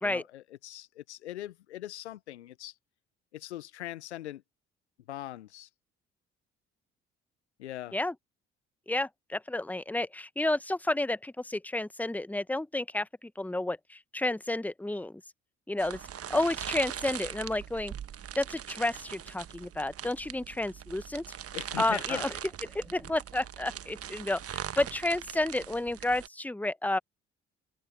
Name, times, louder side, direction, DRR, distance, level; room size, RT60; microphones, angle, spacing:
voice 1, 0.0-2.8 3.3-4.4 5.1-5.7 7.6-8.0 21.5-22.3, left 14 dB, 85° left, 0.9 m, -41 dB
voice 2, 8.9-15.2 15.7-16.0 16.3-17.9 18.4-21.2 21.8-22.3 22.7-27.0, left 2 dB, 5° left, 1.1 m, -31 dB
sound 1, 15.8-26.3, right 9 dB, 45° right, 1.3 m, -41 dB
hypercardioid pair, 45°, 33 cm